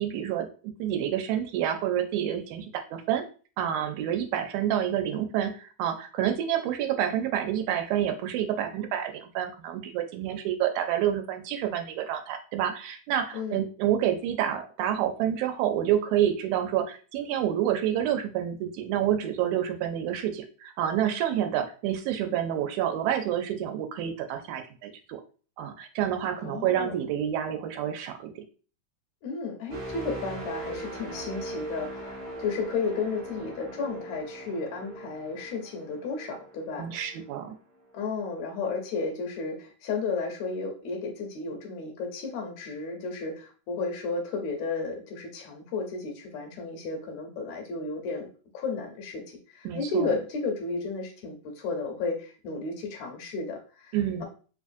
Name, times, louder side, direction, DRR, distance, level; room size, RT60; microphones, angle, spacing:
voice 1, 0.0-3.2 3.6-25.2 25.6-28.4 36.8-37.5 49.7-50.1 53.9-54.2, right 10 dB, 85° right, 6 dB, 2.0 m, -28 dB
voice 2, 26.4-27.0 29.2-37.0 37.9-48.3 48.5-53.9, left 4 dB, 75° left, 3 dB, 1.9 m, -33 dB
sound 1, 29.7-37.5 38.0-38.2, right 1 dB, 40° right, 0.9 m, -40 dB
4.5 x 2.4 x 2.5 m, 0.38 s
omnidirectional pair, 3.3 m